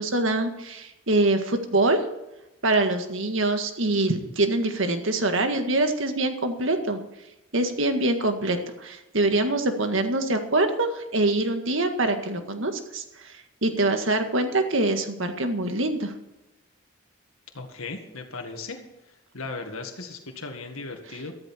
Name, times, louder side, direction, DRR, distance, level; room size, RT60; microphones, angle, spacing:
voice 1, 0.0-2.0 2.6-7.0 7.5-13.3 13.6-16.1, right 2 dB, 70° right, 6 dB, 1.8 m, -24 dB
voice 2, 17.5-18.8 19.3-21.3, left 3 dB, 90° left, 3 dB, 1.9 m, -36 dB
14.0 x 13.5 x 4.5 m, 0.95 s
head